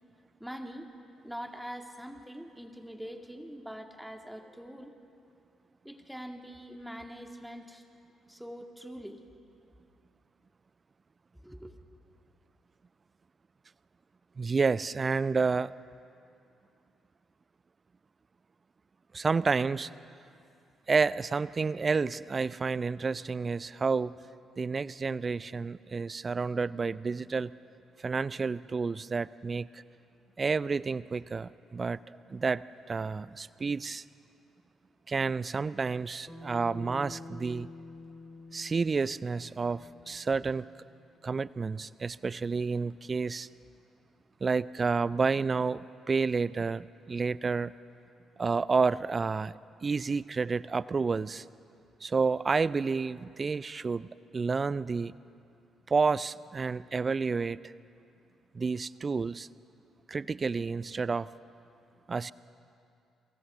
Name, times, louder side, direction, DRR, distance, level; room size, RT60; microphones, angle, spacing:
voice 1, 0.4-0.9 1.2-4.9 5.8-7.8 8.3-9.2 11.4-11.7, equal, ahead, 4 dB, 2.2 m, -43 dB
voice 2, 14.4-15.7 19.1-19.9 20.9-24.1 24.6-27.5 28.0-29.8 30.4-32.0 32.3-32.6 32.9-34.0 35.1-37.7 38.5-40.7 41.2-43.5 44.4-47.7 48.4-49.5 49.8-51.4 52.0-54.1 54.3-55.1 55.9-57.6 58.5-59.5 60.1-61.3 62.1-62.3, right 4 dB, 35° right, 19 dB, 0.4 m, -30 dB
Bass guitar, 36.3-40.7, left 2 dB, 20° left, 6.9 m, -48 dB
29.5 x 24.0 x 3.7 m, 2.6 s
hypercardioid pair, 45°, 0 cm